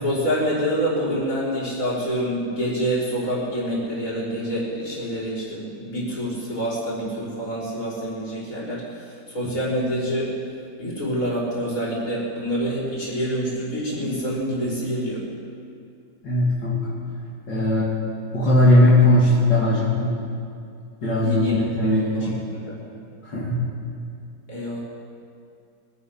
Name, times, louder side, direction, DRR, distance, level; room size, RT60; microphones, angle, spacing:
voice 1, 0.0-8.8 9.3-10.3 10.8-15.2 21.2-21.5 21.8-22.3 22.6-22.8 24.5-24.8, equal, 45° left, -7 dB, 5.5 m, -26 dB
voice 2, 16.2-17.0 17.5-17.9 18.3-20.2 21.0-22.4 23.2-23.6, left 1 dB, 75° left, -8 dB, 3.2 m, -19 dB
25.0 x 9.6 x 5.9 m, 2.4 s
omnidirectional pair, 1.9 m